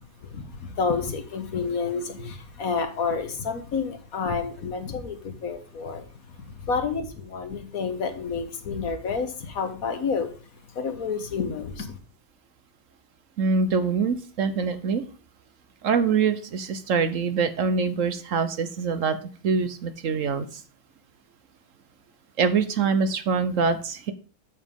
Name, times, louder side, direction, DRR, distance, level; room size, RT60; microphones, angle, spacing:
voice 1, 0.2-10.3 10.7-12.0, left 5 dB, 65° left, 8 dB, 1.7 m, -29 dB
voice 2, 13.4-15.0 15.8-19.2 19.4-20.6 22.4-24.1, right 5 dB, 60° right, 11 dB, 1.1 m, -24 dB
8.1 x 7.2 x 3.6 m, 0.39 s
omnidirectional pair, 1.6 m